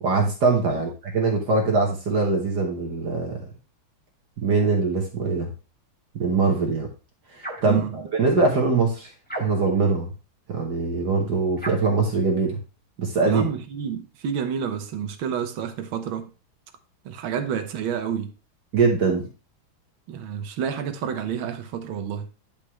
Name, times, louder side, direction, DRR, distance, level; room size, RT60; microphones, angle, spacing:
voice 1, 0.0-3.4 4.4-5.5 6.2-6.9 7.4-9.1 9.4-10.1 10.5-12.6 13.0-13.4 18.7-19.3, right 4 dB, 55° right, 1.7 m, -22 dB
sound 1, 7.4-7.8 9.3-9.8 11.6-12.0, right 1 dB, 5° left, 1.3 m, -35 dB
voice 2, 7.6-8.0 13.3-16.3 17.1-18.3 20.1-22.3, right 8 dB, 75° right, 1.7 m, -29 dB
10.0 x 5.3 x 3.1 m
omnidirectional pair, 2.3 m